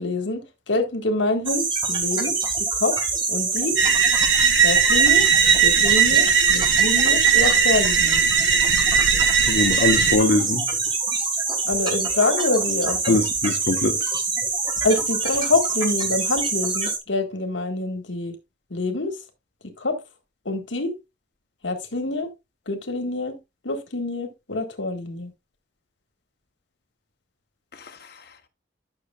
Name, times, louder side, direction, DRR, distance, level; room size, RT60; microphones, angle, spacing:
voice 1, 0.0-3.0 3.3-3.8 4.6-5.3 5.6-8.2 11.7-13.2 14.8-18.4 18.7-19.2 19.8-20.0 20.5-20.9 21.6-22.3 22.7-23.3 23.6-25.3, left 2 dB, 85° left, 1.8 m, -26 dB
sound 1, 1.5-17.0, right 4 dB, 25° right, 2.1 m, -25 dB
sound 2, 3.8-10.2, right 7 dB, 80° right, 1.3 m, -18 dB
voice 2, 9.5-10.7 13.1-14.0, left 2 dB, 60° left, 1.0 m, -21 dB
11.5 x 6.5 x 2.4 m
head